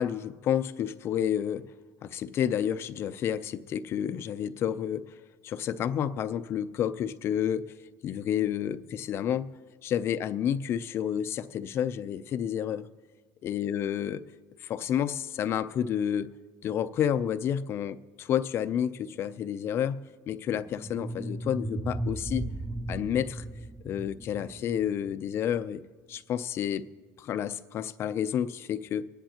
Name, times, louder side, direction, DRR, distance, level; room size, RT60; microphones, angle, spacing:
voice 1, 0.0-1.6 2.0-5.0 5.4-7.7 8.0-9.5 9.8-12.9 13.4-14.2 14.6-16.3 16.6-22.5 22.9-23.4 23.8-25.8 26.1-26.9 27.2-29.0, left 9 dB, 40° left, 0.5 m, -30 dB
sound 1, 20.6-25.6, right 2 dB, 10° right, 0.4 m, -36 dB
25.0 x 10.0 x 2.9 m
cardioid pair, 140°, 6 cm